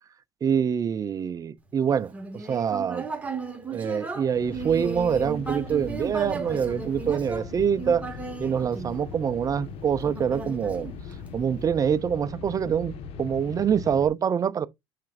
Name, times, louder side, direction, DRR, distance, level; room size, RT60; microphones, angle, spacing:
voice 1, 0.4-3.1 3.7-8.1 8.4-10.9 11.3-12.9 13.2-14.7, right 7 dB, 30° right, 0.6 m, -25 dB
Human voice, 2.1-9.4 10.0-11.5, right 4 dB, 10° right, 2.1 m, -35 dB
sound 1, 4.3-14.1, left 6 dB, 55° left, 1.4 m, -40 dB
7.4 x 5.8 x 2.6 m
supercardioid pair, 110°, 12 cm